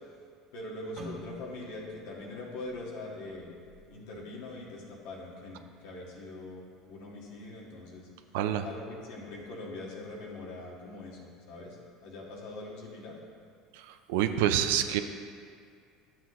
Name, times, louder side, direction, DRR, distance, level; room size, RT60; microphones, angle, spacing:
voice 1, 0.5-3.6 3.9-6.6 6.9-8.1 8.6-11.8 12.0-13.2, left 2 dB, 75° left, -3 dB, 1.7 m, -42 dB
sound 1, 1.0-5.0 5.3-5.6 6.3-6.6, right 1 dB, 35° right, 1.2 m, -50 dB
voice 2, 8.3-8.6 13.7-13.8 14.1-15.0, right 11 dB, 85° right, 9 dB, 0.5 m, -26 dB
10.0 x 7.4 x 3.1 m, 2.2 s
supercardioid pair, 115°, 0 cm